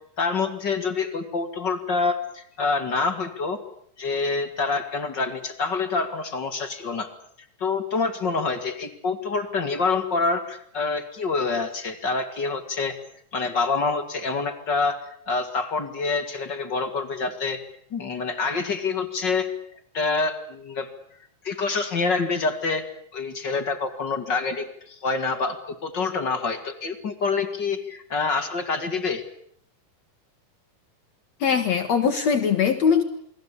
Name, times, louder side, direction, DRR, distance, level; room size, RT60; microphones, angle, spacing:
voice 1, 0.2-3.6 4.0-7.1 7.6-13.0 13.3-17.6 17.9-19.5 19.9-20.9 21.4-22.9 23.1-29.2, left 4 dB, 35° left, 7 dB, 2.6 m, -26 dB
voice 2, 31.4-33.0, left 6 dB, 60° left, 7 dB, 2.5 m, -21 dB
29.0 x 21.5 x 8.5 m, 0.66 s
omnidirectional pair, 3.8 m